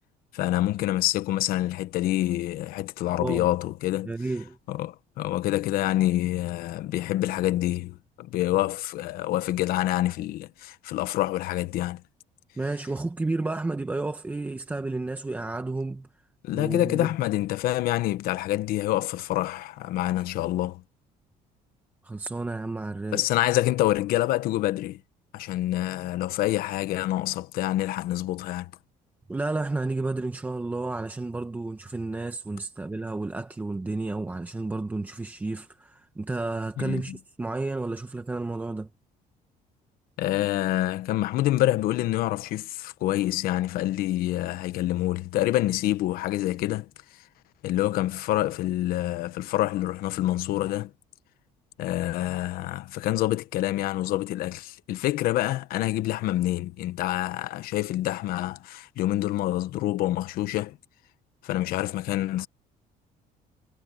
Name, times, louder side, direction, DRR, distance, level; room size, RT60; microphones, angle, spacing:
voice 1, 0.3-4.1 4.7-12.0 16.4-20.8 23.1-25.0 25.3-28.7 36.8-37.2 40.2-46.9 47.6-50.9 51.8-60.8 61.4-62.5, left 15 dB, 70° left, 1.1 m, -27 dB
voice 2, 4.0-4.6 12.6-16.1 16.5-17.1 22.0-23.2 29.3-38.9, right 2 dB, 10° right, 1.0 m, -31 dB
cardioid pair, 160°, 16 cm